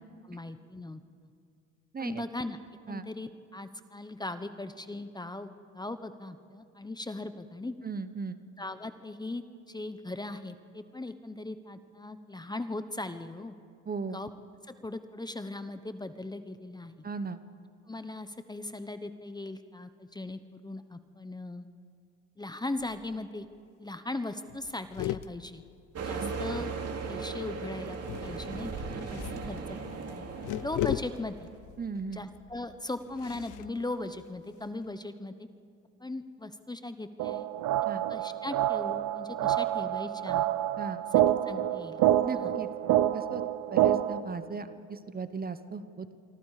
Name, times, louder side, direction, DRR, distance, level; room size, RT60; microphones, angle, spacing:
voice 1, 0.2-1.3 2.0-2.6 2.9-7.7 8.6-13.5 14.1-14.3 14.6-17.1 17.9-21.7 22.4-23.5 23.8-25.6 26.0-26.7 27.1-30.3 30.6-31.5 32.1-35.5 36.0-37.5 38.1-40.5 41.5-42.0 42.3-42.5, left 2 dB, 15° left, 10 dB, 0.9 m, -39 dB
voice 2, 1.9-2.3 2.9-3.1 7.8-8.4 13.8-14.2 17.0-17.4 26.2-26.3 31.8-32.2 37.8-38.0 40.8-41.0 42.2-42.7 43.1-43.4 43.7-46.2, right 4 dB, 30° right, 11 dB, 1.0 m, -37 dB
sound 1, 22.8-23.2 23.5-23.6 23.9-24.2 24.5-26.8 27.9-34.9, left 14 dB, 85° left, 0.5 m, -39 dB
sound 2, 26.0-31.5, right 4 dB, 55° right, 2.6 m, -37 dB
sound 3, 37.2-44.2, right 12 dB, 85° right, 0.8 m, -27 dB
26.5 x 24.5 x 4.9 m, 2.3 s
cardioid pair, 90°, 30 cm